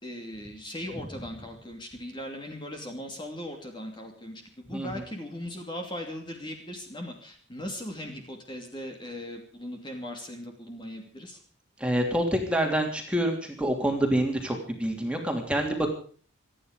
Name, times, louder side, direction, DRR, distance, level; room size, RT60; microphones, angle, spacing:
voice 1, 0.0-4.4 4.7-11.4, left 1 dB, 20° left, 3 dB, 2.7 m, -39 dB
voice 2, 4.7-5.0 11.8-15.9, right 1 dB, 5° right, 2 dB, 3.0 m, -27 dB
27.5 x 10.0 x 5.2 m, 0.43 s
head